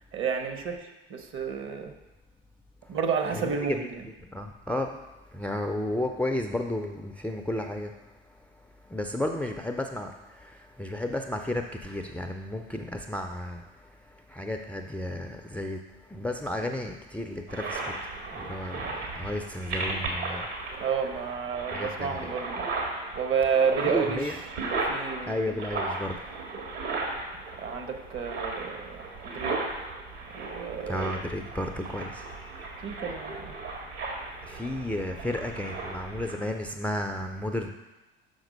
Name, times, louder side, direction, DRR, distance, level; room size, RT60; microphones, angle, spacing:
voice 1, 0.1-1.9 2.9-4.0 20.8-22.7 23.2-25.6 27.6-29.0 29.2-29.6 30.3-31.2 32.8-33.5, right 6 dB, 40° right, 6 dB, 1.0 m, -30 dB
voice 2, 4.3-4.9 5.3-7.9 8.9-10.1 10.8-13.6 14.3-15.8 16.1-17.9 18.3-20.4 21.7-22.1 23.9-24.3 25.3-26.2 30.9-32.1 34.5-37.7, left 1 dB, 5° left, 4 dB, 0.5 m, -32 dB
sound 1, 17.5-36.3, right 3 dB, 65° right, 1.9 m, -35 dB
5.9 x 5.3 x 5.2 m, 1.1 s
hypercardioid pair, 70°, 30 cm